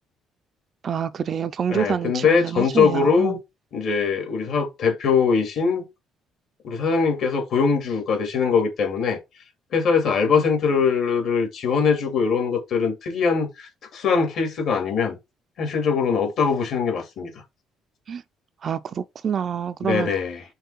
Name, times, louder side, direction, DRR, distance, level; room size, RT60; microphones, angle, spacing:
voice 1, 0.8-3.4 18.1-18.2 18.6-20.1, right 7 dB, 40° right, 0.4 m, -27 dB
voice 2, 1.7-3.4 3.7-5.9 6.6-9.2 9.7-15.2 15.6-17.3 19.8-20.4, left 5 dB, 55° left, 2.5 m, -22 dB
5.6 x 3.3 x 5.7 m
cardioid pair, 150°, 0 cm